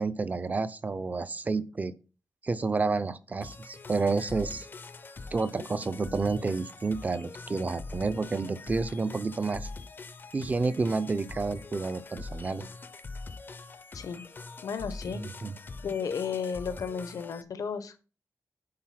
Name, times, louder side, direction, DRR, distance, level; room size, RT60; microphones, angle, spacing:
voice 1, 0.0-1.9 2.4-4.7 5.3-9.7 10.3-12.6 15.2-15.5, right 3 dB, 25° right, 15 dB, 0.5 m, -30 dB
sound 1, 3.4-17.4, left 3 dB, 35° left, 0.5 m, -43 dB
voice 2, 13.9-14.2 14.6-15.2 15.8-18.0, left 6 dB, 80° left, 12 dB, 0.9 m, -33 dB
8.8 x 4.0 x 5.8 m, 0.35 s
wide cardioid pair, 180°, 6 cm